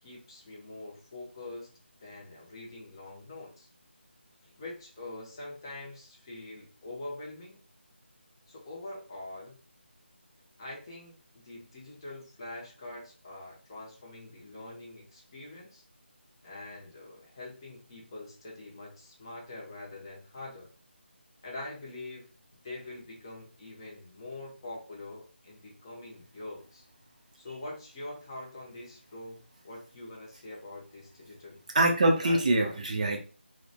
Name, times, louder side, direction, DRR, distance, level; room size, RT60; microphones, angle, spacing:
voice 1, 0.0-1.7 2.0-3.7 4.4-7.6 8.5-9.6 10.6-15.8 16.4-20.7 21.4-22.3 22.6-26.8 27.4-31.6 32.2-32.8, left 2 dB, 25° left, -2 dB, 0.6 m, -44 dB
voice 2, 31.7-33.2, right 1 dB, 35° right, 2 dB, 0.4 m, -24 dB
2.3 x 2.1 x 2.6 m, 0.36 s
figure-of-eight pair, 165°, 6 cm